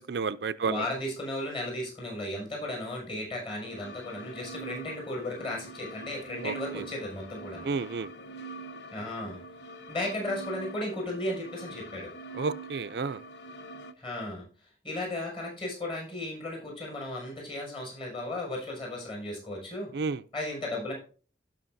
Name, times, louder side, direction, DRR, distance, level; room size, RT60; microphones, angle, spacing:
voice 1, 0.0-0.9 6.4-6.5 7.6-8.1 12.3-13.2 19.9-20.2, right 4 dB, 65° right, 0.4 m, -31 dB
voice 2, 0.6-7.7 8.9-9.4 9.9-12.1 14.0-14.4 14.8-19.9 20.3-20.9, left 1 dB, 30° left, 6.0 m, -35 dB
sound 1, 3.6-13.9, right 2 dB, 75° left, 0.8 m, -44 dB
17.0 x 6.2 x 2.6 m
head